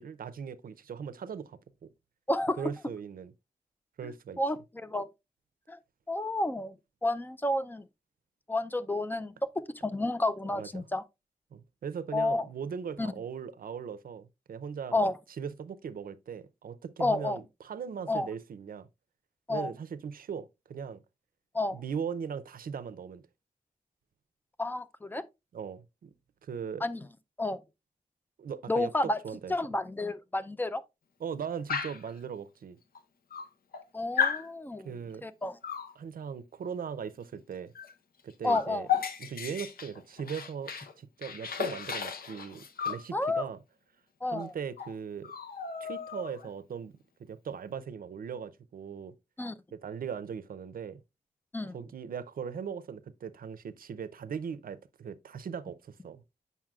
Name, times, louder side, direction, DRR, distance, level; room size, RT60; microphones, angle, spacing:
voice 1, 0.0-1.9 2.6-3.3 4.0-4.4 10.5-10.8 11.5-14.9 15.4-18.9 19.5-21.0 21.7-23.2 25.5-26.1 26.4-26.9 28.4-29.5 31.2-32.8 34.8-35.2 36.0-37.7 38.2-38.9 39.2-43.6 44.3-45.3 45.8-49.1 49.7-51.0 51.7-56.2, right 7 dB, 75° right, 0.5 m, -39 dB
voice 2, 2.3-2.6 4.0-4.1 4.4-5.1 5.7-5.8 6.1-6.7 7.0-7.8 8.5-9.3 9.8-11.0 12.1-12.5 13.0-13.1 14.9-15.1 17.0-17.4 18.1-18.3 19.5-19.7 21.5-21.8 24.6-25.2 26.8-27.0 27.4-27.6 28.7-29.2 29.5-30.8 33.9-34.9 35.2-35.6 38.4-38.9 43.1-43.5 44.2-44.5 49.4-49.5 51.5-51.8, left 2 dB, 15° left, 0.4 m, -30 dB
Dog, 31.7-32.1 33.0-33.1 33.3-33.8 34.2-34.5 35.6-35.9 37.8-37.9 38.2-40.9 41.2-43.1 44.4-44.5 44.8-44.9 45.2-46.5, left 7 dB, 85° left, 0.7 m, -34 dB
7.3 x 5.6 x 2.3 m
wide cardioid pair, 140°, 15 cm